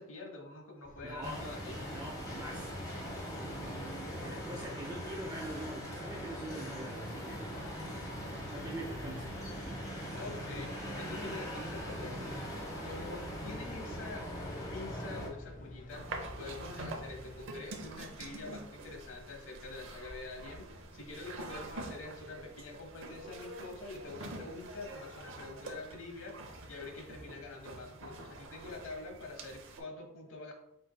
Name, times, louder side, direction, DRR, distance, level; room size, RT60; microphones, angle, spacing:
voice 1, 0.0-1.8 10.1-14.3 14.7-30.5, left 3 dB, 70° left, 3 dB, 1.0 m, -46 dB
sound 1, 0.8-17.4, left 1 dB, 40° left, 0.5 m, -52 dB
voice 2, 1.0-1.5 1.9-3.0 4.2-7.5 8.5-9.3 9.6-9.9, right 1 dB, 20° right, 0 dB, 0.4 m, -44 dB
sound 2, 1.2-15.3, equal, 15° left, 1.1 m, -41 dB
sound 3, 15.9-29.8, right 2 dB, 65° right, 0.8 m, -46 dB
5.1 x 4.1 x 2.2 m, 0.80 s
head